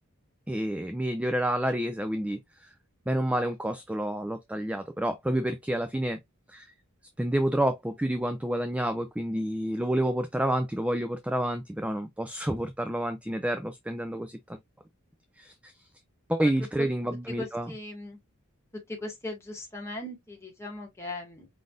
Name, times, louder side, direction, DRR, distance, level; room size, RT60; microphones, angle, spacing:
voice 1, 0.5-2.7 3.1-6.2 6.5-6.7 7.2-14.6 15.4-15.9 16.3-17.7, right 1 dB, 5° right, 0.4 m, -29 dB
voice 2, 17.3-18.2 18.7-21.5, left 2 dB, 10° left, 2.1 m, -38 dB
5.0 x 3.9 x 2.5 m
head